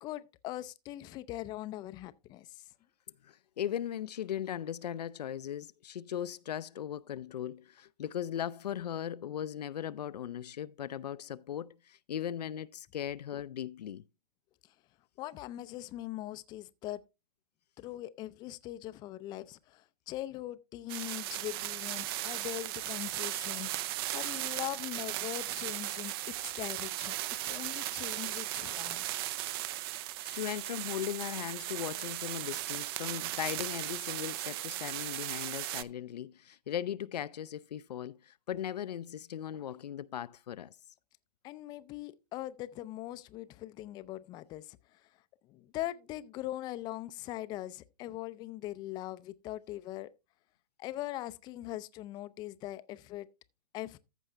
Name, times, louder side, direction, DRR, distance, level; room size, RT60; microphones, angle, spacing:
voice 1, 0.0-2.6 15.2-17.0 17.8-27.2 27.4-29.1 41.4-45.0 45.5-50.1 50.8-53.3 53.7-54.0, left 15 dB, 20° left, 0.4 m, -41 dB
voice 2, 3.2-14.0 30.2-40.7, left 10 dB, 75° left, 0.5 m, -38 dB
sound 1, 20.9-35.8, right 16 dB, 35° right, 0.5 m, -37 dB
14.5 x 5.4 x 3.3 m
hypercardioid pair, 125°, 21 cm